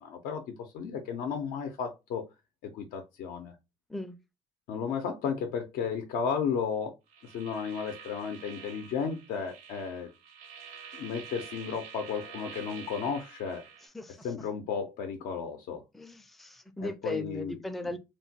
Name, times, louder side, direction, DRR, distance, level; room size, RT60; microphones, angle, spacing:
voice 1, 0.0-2.2 2.6-3.5 4.7-6.9 7.2-10.1 10.9-13.6 14.2-15.8 16.8-17.6, left 6 dB, 75° left, 0.5 m, -34 dB
sound 1, 7.1-13.9, right 7 dB, 85° right, 0.8 m, -47 dB
voice 2, 15.9-18.0, left 1 dB, ahead, 0.4 m, -38 dB
3.0 x 2.2 x 2.8 m
cardioid pair, 100°, 15 cm